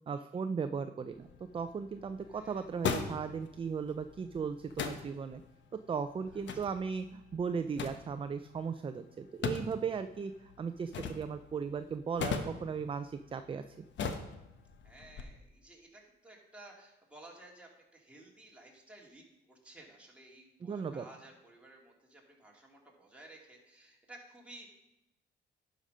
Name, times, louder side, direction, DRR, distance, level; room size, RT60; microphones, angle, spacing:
voice 1, 0.1-5.4 5.9-13.6 20.6-21.0, right 6 dB, 25° right, 10 dB, 0.4 m, -37 dB
sound 1, 1.1-15.2, left 6 dB, 65° left, 1.0 m, -42 dB
voice 2, 2.3-2.7 6.3-6.4 14.8-24.7, right 2 dB, 5° right, -2 dB, 2.5 m, -55 dB
11.0 x 5.1 x 5.5 m, 0.91 s
cardioid pair, 90°, 20 cm